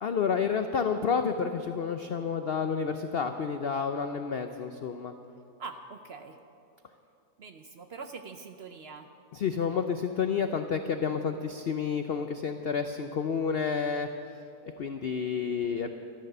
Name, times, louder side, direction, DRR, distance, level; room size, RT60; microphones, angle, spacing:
voice 1, 0.0-5.1 9.3-14.1 14.8-15.9, left 6 dB, 75° left, 7 dB, 0.5 m, -30 dB
voice 2, 5.6-6.4 7.4-9.1, right 4 dB, 60° right, 7 dB, 0.6 m, -43 dB
13.0 x 12.5 x 6.7 m, 2.6 s
omnidirectional pair, 1.7 m